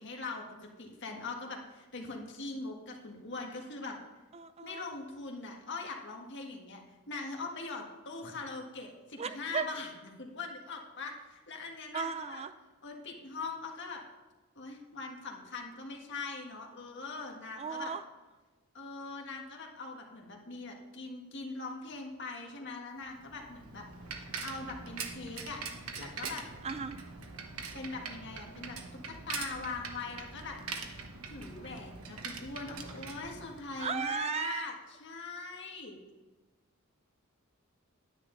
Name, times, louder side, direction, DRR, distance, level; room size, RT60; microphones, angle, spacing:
voice 1, 0.0-4.0 4.6-6.8 7.1-9.9 10.2-12.4 12.8-14.0 14.5-17.9 18.7-23.8 24.2-25.6 25.9-26.4 27.7-28.8 29.0-30.5 31.3-34.7 35.0-36.0, left 3 dB, 55° left, 1 dB, 1.7 m, -41 dB
voice 2, 4.3-4.9 9.2-9.7 11.9-12.5 17.6-18.0 26.6-27.0 33.8-34.7, right 6 dB, 30° right, 11 dB, 0.4 m, -35 dB
Bicycle, 23.1-34.0, right 5 dB, 90° right, 1.1 m, -43 dB
10.0 x 9.7 x 3.9 m, 1.2 s
head